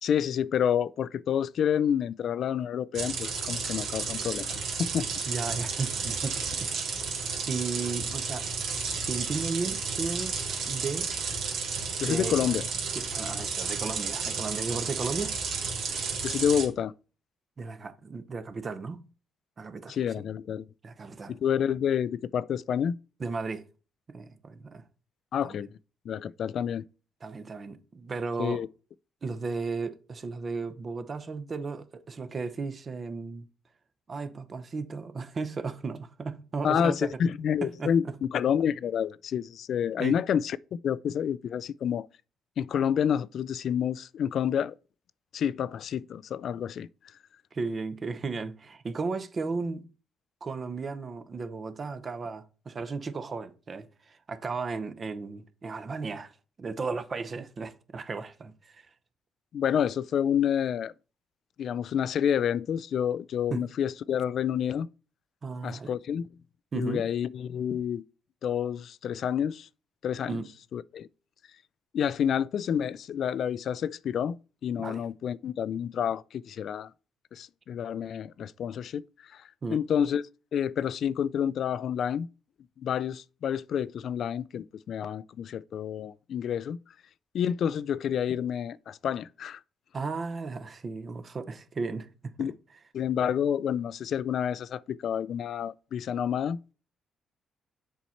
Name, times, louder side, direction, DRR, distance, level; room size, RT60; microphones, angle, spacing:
voice 1, 0.0-5.1 12.0-12.6 16.2-16.9 19.9-20.6 21.3-23.0 25.3-25.7 26.1-26.8 28.4-28.7 36.6-42.1 42.6-44.7 45.3-46.9 59.5-60.9 61.6-64.9 65.6-66.2 66.7-68.0 68.4-69.7 70.0-70.4 70.7-71.1 71.9-76.9 77.3-79.0 79.3-79.4 79.7-80.2 80.5-82.3 82.8-86.8 87.3-89.6 92.4-92.5 92.9-96.6, left 8 dB, 65° left, 0.3 m, -29 dB
sound 1, 3.0-16.7, right 5 dB, 75° right, 2.1 m, -32 dB
voice 2, 5.3-6.7 7.5-8.4 9.0-11.1 12.0-12.5 12.9-15.4 17.6-19.0 19.6-20.2 20.8-21.3 23.2-23.6 24.1-24.8 25.4-25.7 27.2-28.6 29.2-33.5 34.1-37.1 37.6-38.2 40.0-40.2 47.5-49.9 50.4-56.3 56.6-58.9 63.5-63.6 65.4-65.9 66.7-67.0 70.3-70.5 74.8-75.0 79.6-79.8 89.9-92.5, right 4 dB, 40° right, 0.8 m, -35 dB
7.2 x 4.4 x 4.2 m
cardioid pair, 90°, 0 cm